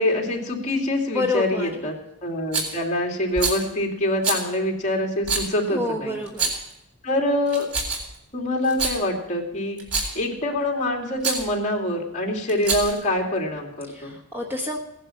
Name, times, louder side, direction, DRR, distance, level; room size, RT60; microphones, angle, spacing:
voice 1, 0.0-1.9 2.2-6.2 7.0-7.7 8.3-9.8 10.1-14.1, left 1 dB, 35° left, 0 dB, 2.7 m, -25 dB
voice 2, 1.1-1.7 5.7-6.6 13.9-14.8, left 2 dB, 10° right, 0 dB, 1.2 m, -28 dB
Rattle, 2.5-2.8 3.3-3.6 4.2-4.4 5.2-5.5 6.3-6.7 7.5-8.2 8.6-9.0 9.8-10.2 11.2-11.4 12.5-13.0, right 4 dB, 85° right, 4.1 m, -26 dB
17.5 x 11.0 x 5.8 m, 0.82 s
head